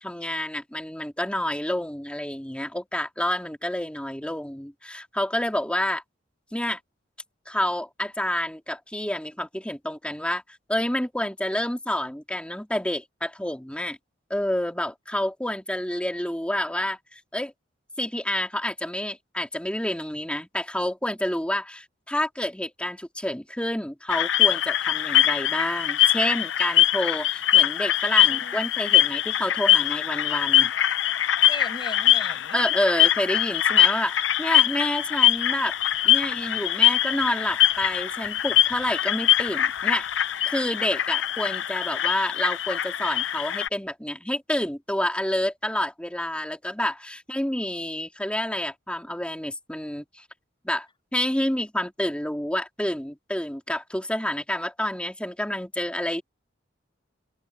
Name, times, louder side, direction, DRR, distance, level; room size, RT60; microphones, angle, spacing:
voice 1, 0.0-6.0 6.5-6.8 7.5-10.4 10.7-14.0 14.3-17.5 18.0-30.7 32.5-35.8 36.0-40.1 40.4-50.2 50.6-50.9 51.1-56.2, left 1 dB, 5° left, 3.0 m, -28 dB
sound 1, 24.1-43.7, left 12 dB, 70° left, 0.6 m, -22 dB
voice 2, 28.3-28.6 31.5-32.6, left 3 dB, 25° left, 6.3 m, -37 dB
head